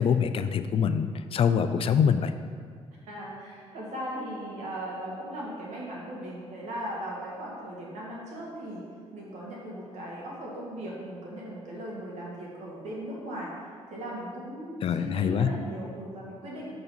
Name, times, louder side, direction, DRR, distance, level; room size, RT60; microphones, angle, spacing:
voice 1, 0.0-2.3 14.8-15.5, left 7 dB, 50° left, 10 dB, 0.3 m, -24 dB
voice 2, 3.0-8.9 9.1-13.5 13.9-16.8, right 1 dB, 85° right, -4 dB, 1.7 m, -38 dB
5.8 x 3.9 x 5.5 m, 2.1 s
cardioid pair, 100°, 12 cm